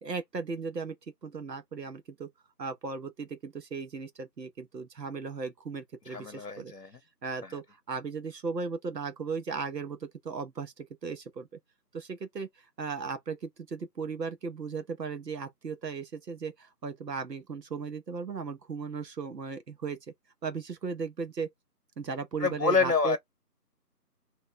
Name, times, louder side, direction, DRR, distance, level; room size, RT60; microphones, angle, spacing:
voice 1, 0.0-1.0 1.2-2.3 2.6-6.7 7.2-11.6 11.9-20.0 20.4-21.5 22.0-23.2, right 5 dB, 85° right, 0.9 m, -36 dB
voice 2, 6.1-6.9 7.4-7.6 22.4-23.2, left 5 dB, 65° left, 0.8 m, -27 dB
2.5 x 2.0 x 3.8 m
figure-of-eight pair, 165°, 48 cm